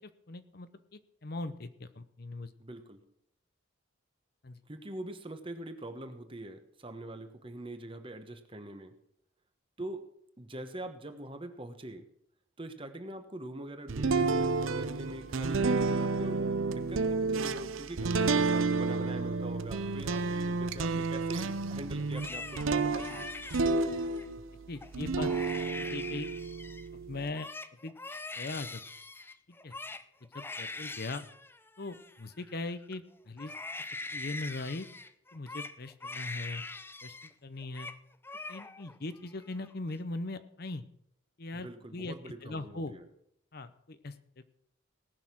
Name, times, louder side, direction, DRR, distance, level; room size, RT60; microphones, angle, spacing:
voice 1, 0.0-2.5 4.4-4.6 24.7-25.3 25.8-26.3 27.1-27.5 27.8-27.9 28.4-28.8 29.5-29.7 30.3-31.2 31.8-33.6 34.1-34.9 35.3-36.6 37.0-37.9 38.5-40.8 41.4-42.9 43.5-44.1, left 2 dB, 50° left, 12 dB, 0.7 m, -40 dB
voice 2, 2.6-3.0 4.7-8.9 9.8-10.0 10.4-12.1 12.6-23.3 41.5-43.1, right 1 dB, 25° right, 8 dB, 1.2 m, -43 dB
sound 1, 13.9-24.5 24.9-27.3, right 4 dB, 80° right, 0.7 m, -30 dB
Crying sobbing, 22.0-24.3 24.8-24.9 25.2-26.9 27.2-32.9 33.4-37.3 37.6-38.0 38.2-39.0 39.3-39.9, left 3 dB, 10° left, 0.5 m, -43 dB
18.0 x 6.5 x 6.1 m, 0.72 s
head